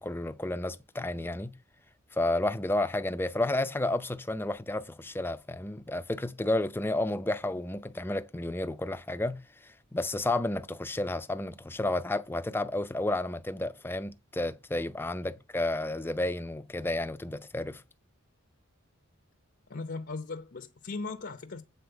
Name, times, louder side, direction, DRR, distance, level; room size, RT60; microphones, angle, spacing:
voice 1, 0.0-1.5 2.1-9.4 9.9-17.8, left 2 dB, 10° left, 0.5 m, -31 dB
voice 2, 19.7-21.6, left 3 dB, 50° left, 0.7 m, -38 dB
7.9 x 4.2 x 6.9 m
head